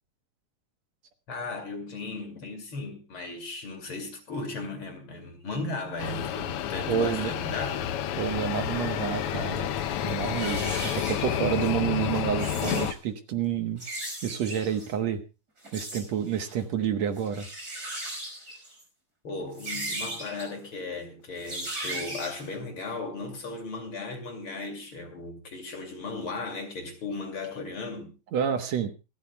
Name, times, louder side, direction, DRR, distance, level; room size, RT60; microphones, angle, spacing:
voice 1, 1.3-7.9 19.2-28.1, left 3 dB, 45° left, 3.1 m, -36 dB
sound 1, 6.0-12.9, left 10 dB, 70° left, 1.4 m, -30 dB
voice 2, 6.9-7.3 8.2-9.7 10.0-13.8 14.2-15.2 15.7-17.5 28.3-28.9, right 8 dB, 65° right, 2.3 m, -29 dB
sound 2, 9.8-9.9 10.2-11.7 12.3-12.9 13.8-14.9 15.6-16.0 16.3-16.6 17.2-18.8 19.5-20.5 21.4-22.5, right 1 dB, 30° right, 5.9 m, -37 dB
27.5 x 12.5 x 2.3 m
omnidirectional pair, 3.4 m